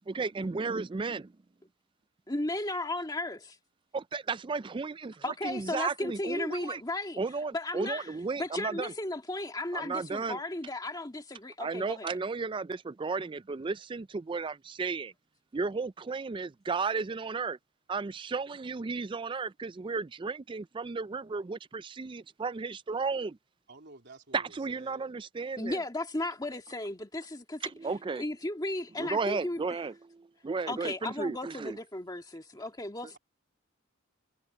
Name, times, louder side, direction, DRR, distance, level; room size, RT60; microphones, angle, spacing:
voice 1, 0.1-1.3 3.9-6.8 7.2-8.9 9.7-10.4 11.6-15.1 15.5-17.6 17.9-23.4 24.3-25.8 27.6-28.2 29.0-31.8, right 4 dB, 25° right, 0.3 m, -34 dB
voice 2, 2.3-3.6 5.2-7.2 7.5-8.1 8.4-12.2 25.6-27.6 28.1-29.8 30.7-33.2, left 2 dB, 20° left, 1.8 m, -35 dB
voice 3, 23.7-25.1, right 2 dB, 55° right, 3.5 m, -52 dB
head